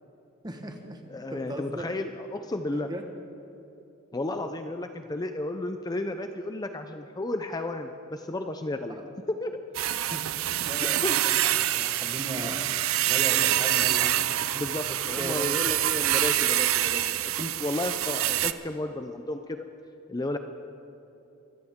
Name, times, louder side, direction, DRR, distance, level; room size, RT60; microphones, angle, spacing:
voice 1, 0.4-1.0 1.3-1.8 2.7-3.0 10.1-10.2 10.6-12.6 13.1-14.1 14.9-15.5, right 1 dB, 20° right, 4 dB, 1.3 m, -37 dB
voice 2, 1.1-2.9 4.1-9.0 9.3-9.6 10.8-11.2 12.4-12.5 14.5-19.7 20.1-20.4, left 2 dB, 20° left, 7 dB, 0.5 m, -33 dB
sound 1, 9.7-18.5, right 13 dB, 85° right, 0.5 m, -26 dB
24.0 x 14.0 x 3.7 m, 2.9 s
head